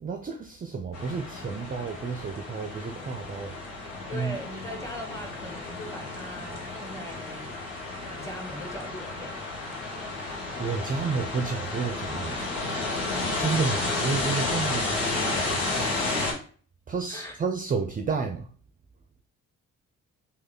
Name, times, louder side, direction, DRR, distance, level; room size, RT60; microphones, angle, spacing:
voice 1, 0.0-3.6 4.1-4.4 10.6-12.4 13.4-16.0 16.9-18.5, right 5 dB, 25° right, 0.4 m, -31 dB
sound 1, 0.9-16.3, left 2 dB, 90° left, 0.7 m, -32 dB
voice 2, 4.1-7.6 8.1-9.4 15.6-16.5 17.1-17.4, left 1 dB, 10° left, 1.1 m, -40 dB
3.1 x 2.2 x 3.7 m
hypercardioid pair, 45°, 37 cm